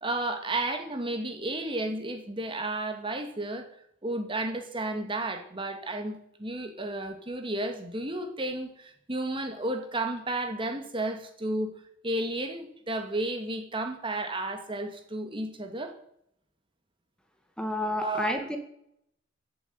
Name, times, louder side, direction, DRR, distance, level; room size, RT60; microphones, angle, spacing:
voice 1, 0.0-3.7 4.0-11.7 12.0-15.9 17.9-18.3, right 2 dB, 30° right, 6 dB, 2.1 m, -32 dB
voice 2, 17.6-18.6, left 1 dB, 5° left, 5 dB, 2.1 m, -30 dB
16.0 x 8.1 x 9.5 m, 0.71 s
head